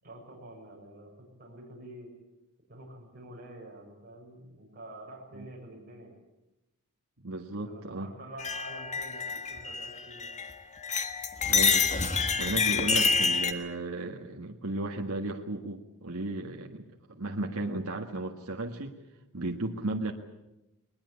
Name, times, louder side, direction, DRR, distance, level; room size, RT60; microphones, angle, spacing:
voice 1, 0.0-2.1 2.7-6.1 7.6-10.3 12.8-13.1, right 1 dB, 45° right, -1 dB, 6.7 m, -47 dB
voice 2, 7.2-8.1 11.5-11.9 12.4-18.9 19.3-20.1, right 2 dB, 80° right, 1 dB, 1.7 m, -34 dB
sound 1, 8.4-10.5 10.8-13.5, left 5 dB, 35° left, 1.6 m, -27 dB
21.0 x 20.5 x 8.5 m, 0.94 s
head